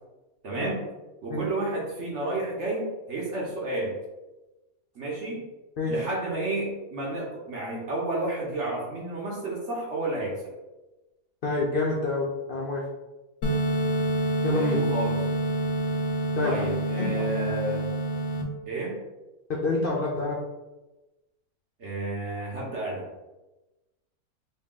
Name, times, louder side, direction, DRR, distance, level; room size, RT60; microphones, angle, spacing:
voice 1, 0.4-0.9 1.2-3.9 4.9-5.5 5.9-10.4 14.5-15.2 16.4-17.8 18.7-19.0 21.8-23.0, right 2 dB, 55° right, -3 dB, 1.0 m, -31 dB
voice 2, 11.4-12.8 14.4-14.8 16.4-16.5 17.0-17.5 19.5-20.4, left 3 dB, 75° left, -3 dB, 0.5 m, -28 dB
sound 1, 13.4-18.4, right 1 dB, 60° left, 0.8 m, -27 dB
4.1 x 2.2 x 3.7 m, 1.1 s
omnidirectional pair, 1.6 m